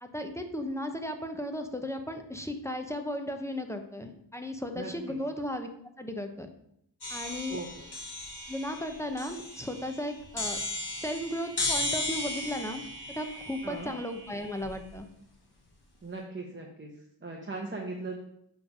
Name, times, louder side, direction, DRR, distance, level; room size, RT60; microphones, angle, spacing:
voice 1, 0.0-5.7 6.0-6.5 7.1-7.6 8.5-10.6 11.0-12.8 13.1-15.1, left 1 dB, 5° left, 5 dB, 0.7 m, -35 dB
voice 2, 4.7-5.2 7.5-7.9 13.6-13.9 16.0-16.9 17.2-18.2, right 3 dB, 25° right, 0 dB, 0.9 m, -39 dB
sound 1, 7.0-14.9, left 2 dB, 60° left, 1.5 m, -36 dB
7.1 x 3.3 x 5.3 m, 0.74 s
wide cardioid pair, 60°, 43 cm